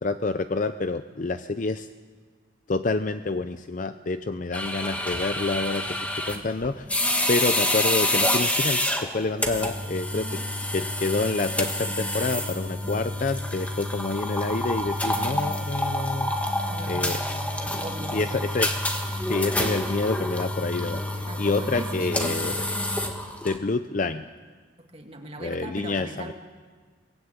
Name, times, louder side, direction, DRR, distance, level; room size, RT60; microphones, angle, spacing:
voice 1, 0.0-1.9 2.7-5.9 6.3-6.9 7.3-10.4 10.7-17.2 17.7-17.8 18.1-18.8 19.3-22.5 23.4-24.3 25.4-26.3, left 3 dB, 45° left, 10 dB, 0.6 m, -28 dB
sound 1, 4.5-23.6, left 1 dB, 10° left, 1.5 m, -28 dB
voice 2, 10.1-10.5 16.7-18.5 21.3-22.4 24.9-26.3, right 1 dB, 35° right, 2 dB, 2.0 m, -39 dB
23.0 x 16.0 x 8.9 m, 1.5 s
head